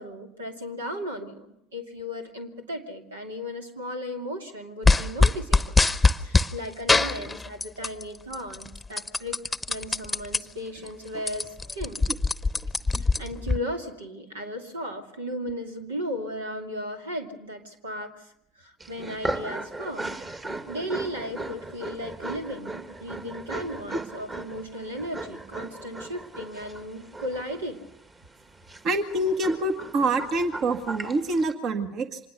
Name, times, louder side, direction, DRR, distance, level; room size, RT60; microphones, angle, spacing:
voice 1, 0.0-5.7 6.2-12.0 13.0-18.3 18.6-20.1 20.7-27.8, equal, 85° right, 4 dB, 2.5 m, -36 dB
sound 1, 4.8-6.5 6.9-8.0 8.3-10.4 10.8-10.9 11.1-13.6, left 3 dB, 10° left, 0.9 m, -22 dB
sound 2, 18.8-31.5, right 2 dB, 30° right, 2.3 m, -37 dB
voice 2, 28.8-32.2, right 2 dB, 50° right, 7 dB, 1.9 m, -26 dB
25.5 x 20.5 x 6.9 m, 0.78 s
hypercardioid pair, 70°, 0 cm